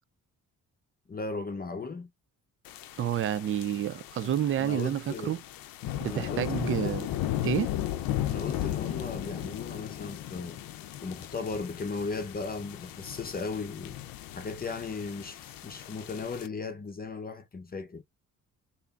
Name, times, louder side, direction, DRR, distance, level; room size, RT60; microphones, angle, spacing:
voice 1, 1.1-2.1 4.2-4.3 4.6-5.4 6.0-7.0 8.3-10.6 11.0-14.0 14.3-18.0, left 4 dB, 25° left, 0.7 m, -37 dB
sound 1, 2.6-16.5, left 12 dB, 80° left, 0.6 m, -36 dB
voice 2, 3.0-5.4 6.0-7.1 7.4-7.7, right 10 dB, 40° right, 0.4 m, -29 dB
3.6 x 2.6 x 2.4 m
cardioid pair, 85°, 34 cm